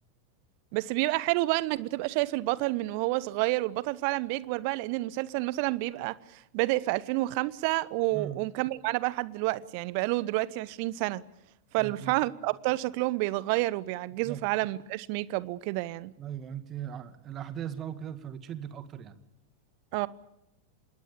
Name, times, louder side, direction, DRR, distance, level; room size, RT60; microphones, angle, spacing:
voice 1, 0.7-11.2 11.7-16.1 19.9-20.1, right 20 dB, 45° right, 1.0 m, -29 dB
voice 2, 11.8-12.2 14.2-14.4 16.2-19.2, right 9 dB, 30° right, 2.2 m, -39 dB
26.5 x 21.0 x 8.6 m
figure-of-eight pair, 90°, 0 cm